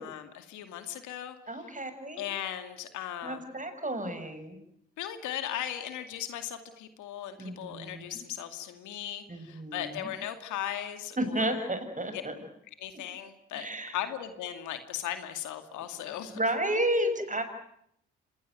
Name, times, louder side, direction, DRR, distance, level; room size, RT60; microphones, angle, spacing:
voice 1, 0.0-1.4 2.1-3.5 5.0-11.7 12.1-12.2 12.8-13.7 13.9-16.4, left 11 dB, 80° left, 9 dB, 2.4 m, -37 dB
voice 2, 1.5-2.2 3.2-4.6 7.4-8.1 9.3-10.1 11.2-12.3 13.5-14.0 16.3-17.4, right 1 dB, 25° right, 9 dB, 6.8 m, -32 dB
26.5 x 19.5 x 9.2 m, 0.74 s
hypercardioid pair, 50°, 29 cm